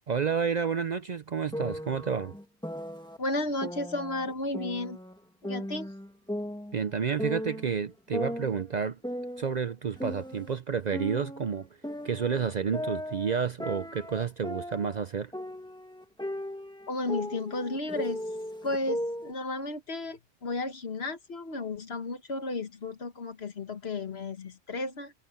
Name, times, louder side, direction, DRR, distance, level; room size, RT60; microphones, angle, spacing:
voice 1, 0.1-2.3 6.7-9.0 9.4-11.7 12.0-15.3, right 6 dB, 50° right, 0.6 m, -30 dB
sound 1, 1.5-3.2 3.6-5.2 5.4-7.7 8.1-10.6 10.9-15.0 15.3-19.3, equal, 5° left, 1.7 m, -37 dB
voice 2, 3.2-5.0 5.4-5.9 16.9-18.2 18.6-25.1, left 2 dB, 65° left, 1.7 m, -33 dB
omnidirectional pair, 1.2 m